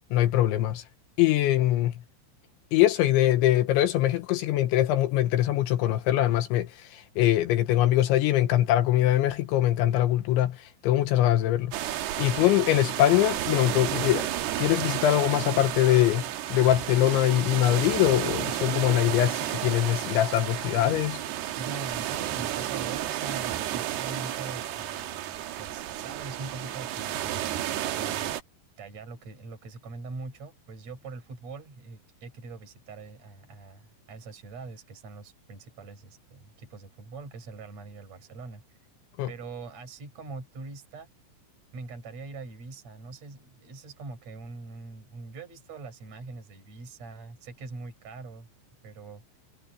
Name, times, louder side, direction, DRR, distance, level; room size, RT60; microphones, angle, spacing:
voice 1, 0.1-0.8 1.2-1.9 2.7-11.7 12.2-14.3 14.6-21.2 39.2-39.3, left 13 dB, 75° left, 3.2 m, -23 dB
sound 1, 11.7-28.4, right 12 dB, 70° right, 2.9 m, -32 dB
voice 2, 21.6-28.3 28.8-38.6 39.3-41.1 41.7-48.5 48.8-49.2, right 3 dB, 35° right, 6.7 m, -42 dB
omnidirectional pair, 5.7 m